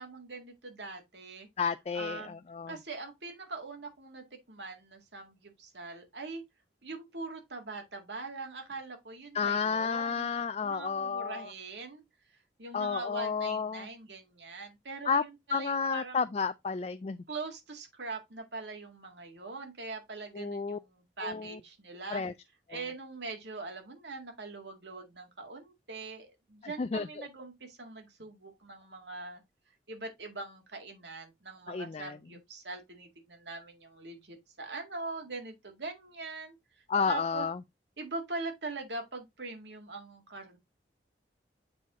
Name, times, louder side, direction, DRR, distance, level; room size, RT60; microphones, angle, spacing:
voice 1, 0.0-1.5 1.9-2.4 2.7-6.4 6.8-12.0 12.6-16.2 17.3-22.2 22.7-29.4 29.9-36.6 37.1-37.5 38.0-40.6, right 3 dB, 80° right, 1.9 m, -42 dB
voice 2, 1.6-2.7 9.3-11.5 12.7-13.9 15.1-15.2 15.5-17.2 20.3-20.8 21.2-21.5 22.1-22.3 22.7-22.8 26.8-27.3 31.7-32.1 36.9-37.5, left 5 dB, 35° left, 0.3 m, -31 dB
7.5 x 4.6 x 3.6 m
head